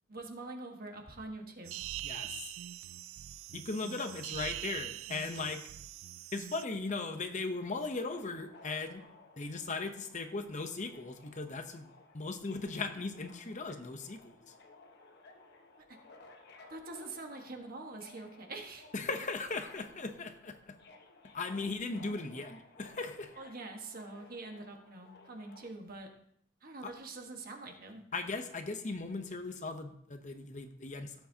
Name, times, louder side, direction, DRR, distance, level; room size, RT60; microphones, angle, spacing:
voice 1, 0.1-1.8 15.9-16.0 16.7-18.9 23.4-26.1 26.6-28.0, right 2 dB, 45° right, 3 dB, 1.5 m, -45 dB
sound 1, 1.6-6.6, right 13 dB, 75° right, 0.3 m, -43 dB
voice 2, 2.0-2.5 3.5-5.6 6.3-9.0 9.4-14.3 18.9-20.8 21.3-23.3 26.8-26.9 28.1-31.1, left 3 dB, 35° left, 7 dB, 0.8 m, -38 dB
Subway metro underground, 6.9-25.7, left 3 dB, 50° left, 1.2 m, -58 dB
16.0 x 8.1 x 2.8 m, 0.68 s
head